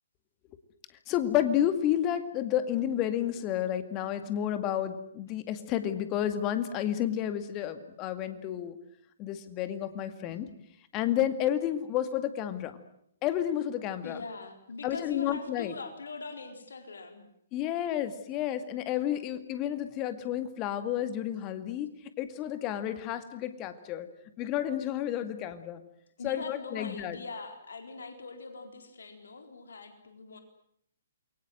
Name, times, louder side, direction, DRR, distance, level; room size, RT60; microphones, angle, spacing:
voice 1, 1.1-8.8 9.2-10.5 10.9-12.8 13.2-14.2 14.8-15.7 17.5-24.1 24.4-25.8 26.2-27.2, left 11 dB, 25° left, 10 dB, 2.2 m, -31 dB
voice 2, 14.0-17.3 26.2-30.4, left 4 dB, 60° left, 6 dB, 4.2 m, -42 dB
28.5 x 23.0 x 7.9 m, 0.71 s
figure-of-eight pair, 125°, 0 cm